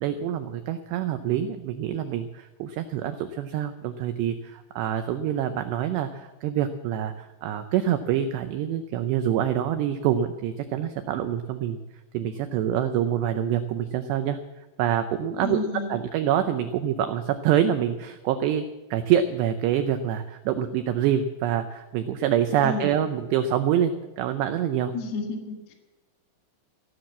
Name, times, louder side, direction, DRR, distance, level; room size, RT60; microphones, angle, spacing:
voice 1, 0.0-11.8 12.1-14.4 14.8-24.9, right 10 dB, 85° right, 8 dB, 2.4 m, -26 dB
voice 2, 15.4-16.0 22.6-22.9 24.9-25.7, left 3 dB, 60° left, 2 dB, 3.5 m, -31 dB
16.0 x 10.5 x 7.3 m, 1.1 s
omnidirectional pair, 5.8 m